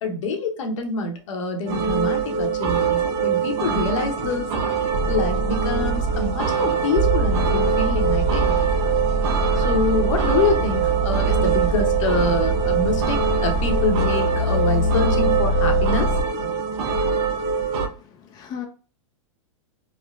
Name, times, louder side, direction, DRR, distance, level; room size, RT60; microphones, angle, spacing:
voice 1, 0.0-4.5 5.1-8.5 9.6-16.1, left 3 dB, 70° left, 4 dB, 0.8 m, -26 dB
sound 1, 1.7-17.9, right 6 dB, 50° right, 0.6 m, -24 dB
sound 2, 4.9-16.2, right 1 dB, 25° right, 0.9 m, -24 dB
voice 2, 17.2-18.7, left 8 dB, 25° left, 3 dB, 0.4 m, -40 dB
3.1 x 2.1 x 2.4 m, 0.36 s
hypercardioid pair, 125°, 17 cm